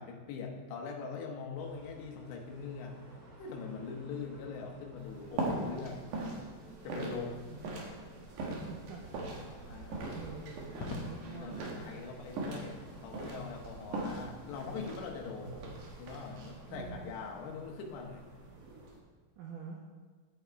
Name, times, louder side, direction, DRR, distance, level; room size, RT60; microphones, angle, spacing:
voice 1, 0.0-2.9 3.4-6.0 6.8-7.4 9.5-10.3 11.2-15.6 16.0-18.2, left 5 dB, 85° left, 1 dB, 3.3 m, -42 dB
sound 1, 1.5-18.9, right 2 dB, 40° right, 2.5 m, -55 dB
sound 2, 5.0-19.0, right 2 dB, 60° right, 2.5 m, -41 dB
voice 2, 7.5-7.8 8.7-12.2 15.8-15.9 16.4-17.1 19.4-19.8, right 5 dB, 90° right, 0 dB, 1.8 m, -48 dB
Crackle, 10.7-11.9 13.5-14.0, left 2 dB, 55° left, 2.1 m, -44 dB
10.5 x 8.1 x 4.6 m, 1.5 s
omnidirectional pair, 4.9 m